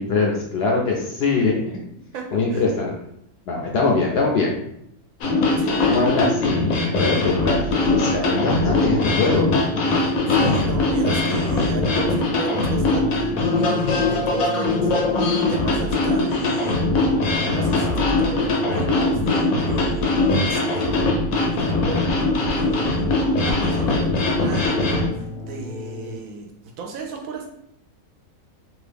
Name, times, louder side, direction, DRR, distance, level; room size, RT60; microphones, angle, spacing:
voice 1, 0.0-1.6 2.3-2.9 3.5-4.5 5.9-9.5, left 3 dB, 65° left, -1 dB, 0.6 m, -22 dB
voice 2, 2.1-2.6 5.6-6.2 10.0-16.9 17.4-23.1 23.4-27.5, right 5 dB, 75° right, 2 dB, 1.0 m, -35 dB
sound 1, 5.2-25.1, left 2 dB, 80° left, 1.1 m, -21 dB
sound 2, 7.1-26.2, left 3 dB, 40° right, 1.0 m, -36 dB
2.8 x 2.4 x 3.3 m, 0.76 s
omnidirectional pair, 1.5 m